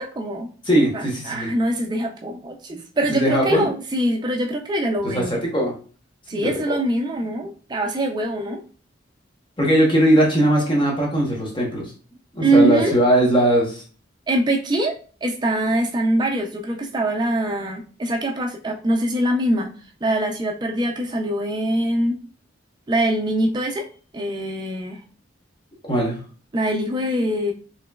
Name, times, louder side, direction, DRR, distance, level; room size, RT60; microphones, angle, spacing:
voice 1, 0.0-0.5 0.9-5.4 6.3-8.6 12.4-12.9 14.3-19.7 20.0-22.2 22.9-23.9 24.1-25.0 26.5-27.5, right 1 dB, 20° right, 2 dB, 0.4 m, -23 dB
voice 2, 0.6-1.5 3.1-3.7 5.0-5.7 6.3-6.8 9.6-11.9 12.3-13.8 25.8-26.2, right 1 dB, 25° left, -2 dB, 0.8 m, -19 dB
3.1 x 2.9 x 2.2 m, 0.39 s
head